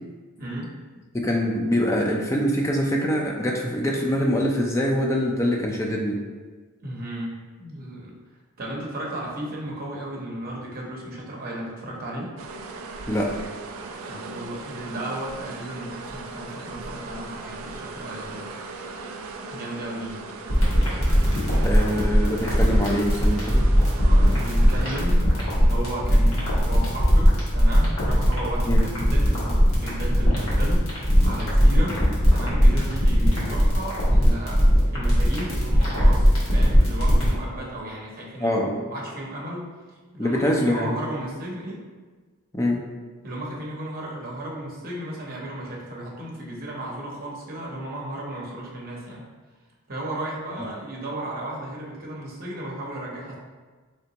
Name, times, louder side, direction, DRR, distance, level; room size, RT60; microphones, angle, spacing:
voice 1, 0.4-0.8 6.8-8.1 8.6-12.3 14.1-18.5 19.5-20.2 23.9-32.0 32.3-38.6 38.9-41.8 43.2-49.2 49.9-53.3, right 1 dB, 40° right, -4 dB, 0.9 m, -34 dB
voice 2, 1.2-6.2 13.1-13.3 21.6-23.6 28.7-28.8 38.4-38.8 40.2-40.9 42.5-42.8, equal, 15° left, -1 dB, 0.4 m, -24 dB
sound 1, 12.4-25.0, right 3 dB, 65° right, 0.4 m, -38 dB
sound 2, 20.5-37.3, equal, 65° left, 1.3 m, -19 dB
3.8 x 3.3 x 2.9 m, 1.4 s
head